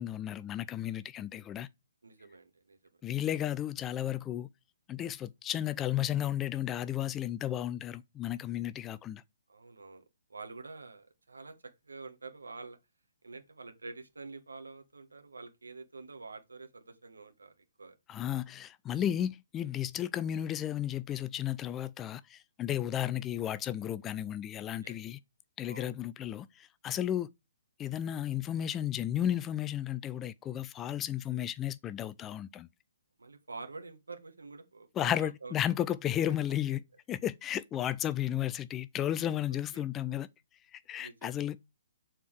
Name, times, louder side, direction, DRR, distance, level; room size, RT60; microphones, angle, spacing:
voice 1, 0.0-1.7 3.0-4.5 4.9-9.2 18.1-25.2 25.6-27.3 27.8-32.7 35.0-36.8 37.1-40.3 40.7-41.6, left 11 dB, 20° left, 0.3 m, -33 dB
voice 2, 2.0-2.8 9.5-12.8 13.2-17.9 24.8-24.9 25.6-25.9 33.2-35.5 39.7-39.8 41.0-41.6, right 3 dB, 75° right, 1.4 m, -47 dB
7.0 x 4.3 x 4.8 m
figure-of-eight pair, 130°, 0 cm